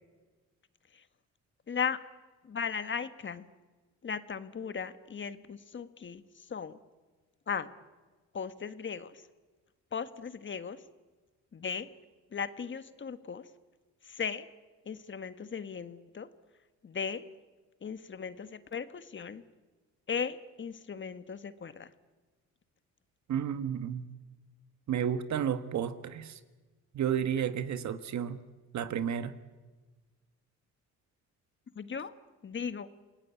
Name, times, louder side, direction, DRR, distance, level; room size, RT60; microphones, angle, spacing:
voice 1, 1.7-2.0 2.4-3.5 4.0-6.8 7.5-7.7 8.3-9.2 9.9-10.8 11.5-11.9 12.3-13.5 14.0-14.5 14.8-16.3 16.8-17.2 17.8-19.4 20.1-21.9 31.7-32.1 32.4-32.9, left 6 dB, 40° left, 12 dB, 1.5 m, -37 dB
voice 2, 23.3-24.0 24.9-26.4 26.9-28.4 28.7-29.3, right 8 dB, 65° right, 11 dB, 1.6 m, -32 dB
28.0 x 18.0 x 8.6 m, 1.3 s
cardioid pair, 90°, 30 cm